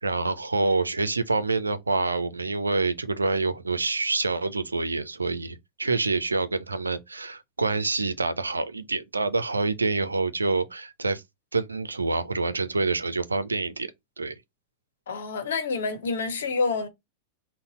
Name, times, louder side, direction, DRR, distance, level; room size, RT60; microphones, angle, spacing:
voice 1, 0.0-11.2 11.5-13.9 14.2-14.3, right 3 dB, 80° right, 0.4 m, -27 dB
voice 2, 15.1-16.9, left 4 dB, 65° left, 1.0 m, -28 dB
4.0 x 2.1 x 4.1 m
figure-of-eight pair, 90°, 0 cm